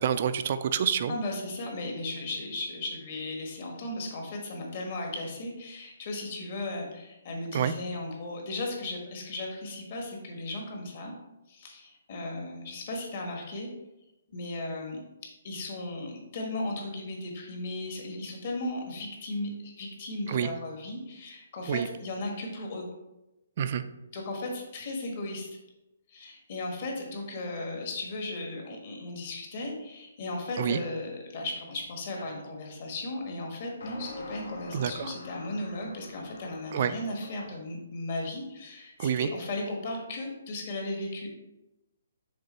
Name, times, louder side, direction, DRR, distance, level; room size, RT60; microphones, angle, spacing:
voice 1, 0.0-1.1 7.5-7.7 20.3-20.5 21.7-21.9 23.6-23.8 30.6-30.8 34.7-35.1 36.7-36.9 39.0-39.3, right 8 dB, 35° right, 12 dB, 0.3 m, -27 dB
voice 2, 1.1-11.1 11.5-13.7 14.3-15.0 15.4-22.9 24.1-25.5 26.1-41.3, left 2 dB, 35° left, 0 dB, 1.4 m, -36 dB
sound 1, 32.2-32.4 33.8-37.6, left 2 dB, 80° left, 1.6 m, -45 dB
6.8 x 3.7 x 4.2 m, 0.95 s
hypercardioid pair, 175°, 0 cm